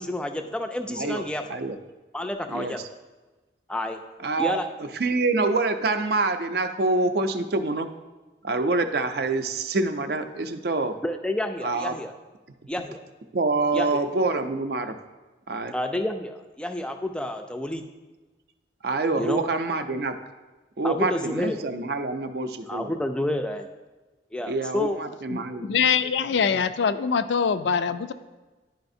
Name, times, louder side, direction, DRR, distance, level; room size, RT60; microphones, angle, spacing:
voice 1, 0.0-1.4 2.1-2.8 3.7-4.0 4.4-4.7 11.0-12.1 12.7-13.0 13.7-14.0 15.7-17.8 19.2-19.4 20.8-21.7 22.7-23.7 24.3-25.0, left 1 dB, 5° left, 5 dB, 0.3 m, -29 dB
voice 2, 0.9-1.2 1.5-1.7 2.5-2.8 4.2-4.6 5.0-7.9 8.4-10.9 11.6-12.0 13.3-14.9 15.5-15.7 18.8-20.1 20.8-22.9 24.5-25.7, right 3 dB, 60° right, 8 dB, 0.5 m, -26 dB
voice 3, 25.3-28.1, left 6 dB, 75° left, 12 dB, 0.4 m, -24 dB
10.5 x 4.8 x 2.6 m, 1.2 s
head